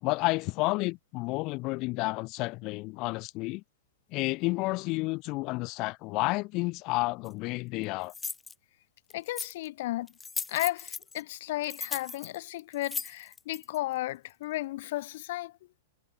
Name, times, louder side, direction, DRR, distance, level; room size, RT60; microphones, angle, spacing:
voice 1, 0.0-3.6 4.1-8.1, left 23 dB, 40° left, 1.2 m, -31 dB
sound 1, 7.3-7.4 8.1-8.5 9.1-9.7 10.1-11.2 11.6-13.8, left 5 dB, 10° left, 0.4 m, -37 dB
voice 2, 9.1-10.1 10.5-15.6, left 16 dB, 60° left, 2.3 m, -34 dB
hypercardioid pair, 145°, 0 cm